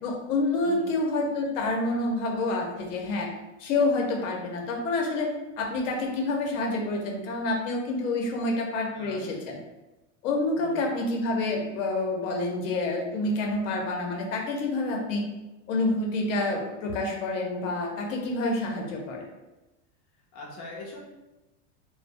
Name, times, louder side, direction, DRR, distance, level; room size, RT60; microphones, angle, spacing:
voice 1, 0.0-3.3 3.6-9.6 10.2-15.2 15.7-19.2, left 2 dB, 85° left, 1 dB, 0.8 m, -28 dB
voice 2, 0.6-1.0 8.9-9.6 10.6-10.9 20.3-21.0, left 2 dB, 25° left, -4 dB, 0.4 m, -43 dB
2.2 x 2.1 x 3.4 m, 1.0 s
supercardioid pair, 165°, 37 cm